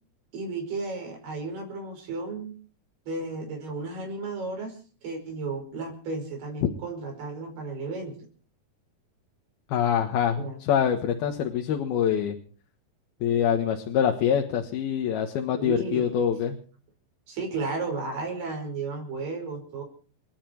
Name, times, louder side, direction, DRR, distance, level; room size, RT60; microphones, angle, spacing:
voice 1, 0.3-2.5 3.1-8.2 10.4-10.6 15.6-16.2 17.3-19.8, right 3 dB, 90° right, 2 dB, 7.2 m, -33 dB
voice 2, 9.7-12.4 13.2-16.6, left 8 dB, 80° left, 4 dB, 3.3 m, -25 dB
30.0 x 10.0 x 4.6 m, 0.40 s
omnidirectional pair, 4.4 m